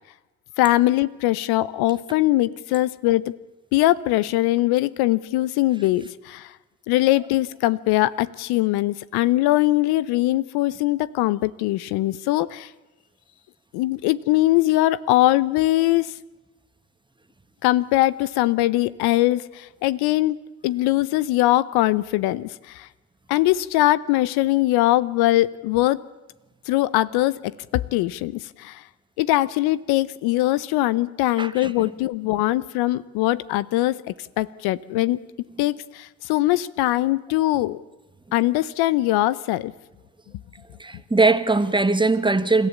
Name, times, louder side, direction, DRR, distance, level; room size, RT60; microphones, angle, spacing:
voice 1, 0.6-3.3 3.7-6.5 6.9-12.7 13.7-16.1 17.6-22.9 23.3-26.0 26.7-28.8 29.2-35.2 35.6-37.8 38.3-39.7, left 16 dB, 70° left, 0.8 m, -21 dB
voice 2, 31.4-31.7 40.8-42.7, right 3 dB, 10° right, 1.6 m, -20 dB
29.5 x 14.0 x 8.5 m
hypercardioid pair, 60°, 39 cm